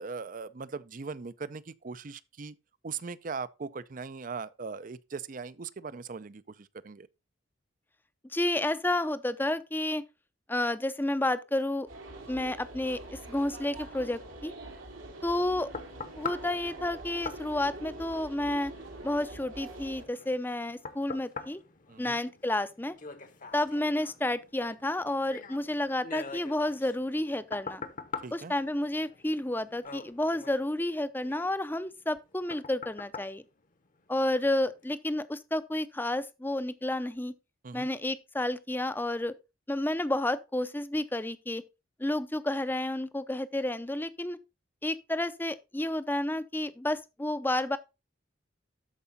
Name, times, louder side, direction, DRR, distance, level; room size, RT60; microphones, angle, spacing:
voice 1, 0.0-2.6 2.8-7.1 21.9-22.2 28.2-28.5 37.6-37.9, right 5 dB, 45° right, 0.5 m, -40 dB
voice 2, 8.3-10.0 10.5-11.9 12.3-14.5 15.2-15.7 16.2-18.7 19.0-21.6 22.0-23.0 23.5-27.8 28.3-33.4 34.1-37.3 37.7-39.4 39.7-41.6 42.0-44.4 44.8-47.8, left 1 dB, 10° left, 0.6 m, -31 dB
sound 1, 11.9-20.0, right 2 dB, 90° right, 2.6 m, -45 dB
sound 2, 15.1-34.3 34.8-35.0, left 5 dB, 45° left, 1.0 m, -45 dB
12.5 x 4.8 x 4.1 m
head